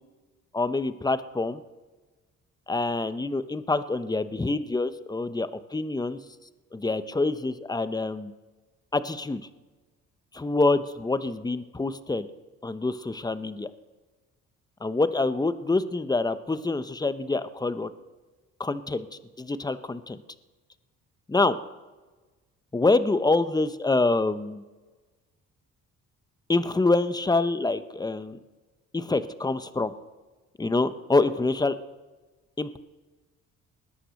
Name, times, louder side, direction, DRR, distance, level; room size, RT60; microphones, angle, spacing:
voice 1, 0.5-1.6 2.7-6.2 6.7-8.3 8.9-9.4 10.3-12.3 12.6-13.7 14.8-17.9 18.6-19.1 19.4-20.2 21.3-21.6 22.7-24.6 26.5-28.4 28.9-29.9 30.6-31.8 32.6-32.8, left 3 dB, 15° left, 12 dB, 0.8 m, -26 dB
19.5 x 10.0 x 6.4 m, 1.3 s
cardioid pair, 90°, 30 cm